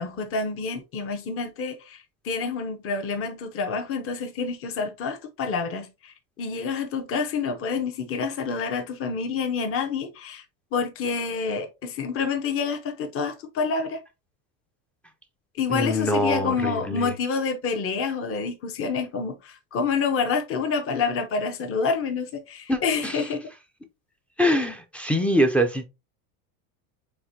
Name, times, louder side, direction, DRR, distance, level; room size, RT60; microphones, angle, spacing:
voice 1, 0.0-2.0 2.2-10.4 10.7-14.0 15.6-23.5, left 5 dB, 35° left, 0.8 m, -28 dB
voice 2, 15.7-17.1 22.7-23.2 24.4-25.9, equal, 5° left, 0.4 m, -24 dB
4.7 x 3.6 x 2.7 m
supercardioid pair, 125°, 40 cm